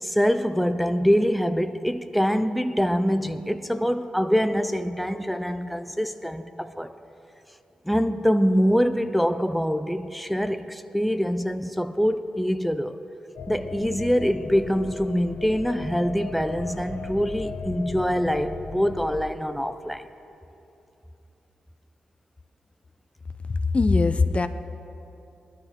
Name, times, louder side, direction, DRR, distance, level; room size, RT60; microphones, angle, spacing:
voice 1, 0.0-6.9 7.9-13.0 13.5-20.1, equal, ahead, 0.7 m, -24 dB
sound 1, 13.4-19.3, left 4 dB, 65° left, 1.1 m, -37 dB
voice 2, 23.5-24.5, left 3 dB, 40° left, 0.7 m, -21 dB
20.0 x 12.5 x 3.7 m
supercardioid pair, 40°, 3 cm